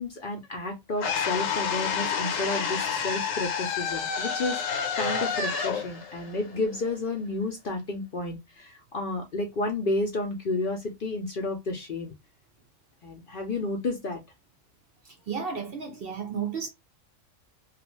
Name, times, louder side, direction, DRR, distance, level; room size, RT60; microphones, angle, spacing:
voice 1, 0.0-12.1 13.0-14.2, left 2 dB, 55° left, 0.6 m, -31 dB
sound 1, 1.0-7.1, left 6 dB, 75° left, 1.1 m, -29 dB
voice 2, 15.0-16.7, right 6 dB, 60° right, 0.6 m, -33 dB
2.4 x 2.3 x 2.9 m
omnidirectional pair, 1.4 m